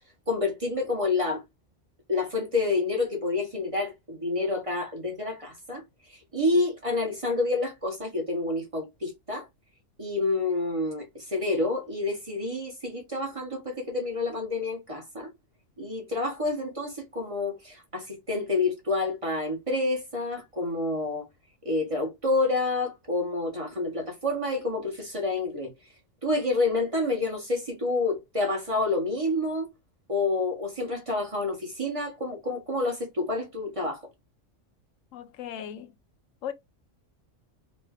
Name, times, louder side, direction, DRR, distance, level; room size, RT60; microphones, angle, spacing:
voice 1, 0.3-1.4 2.1-5.8 6.1-9.5 10.0-15.3 15.8-21.3 21.6-25.7 26.2-29.7 30.1-34.0, left 2 dB, 30° right, 0.8 m, -28 dB
voice 2, 35.1-35.9 36.4-36.5, left 9 dB, 90° left, 1.0 m, -37 dB
3.1 x 2.2 x 3.4 m
omnidirectional pair, 1.3 m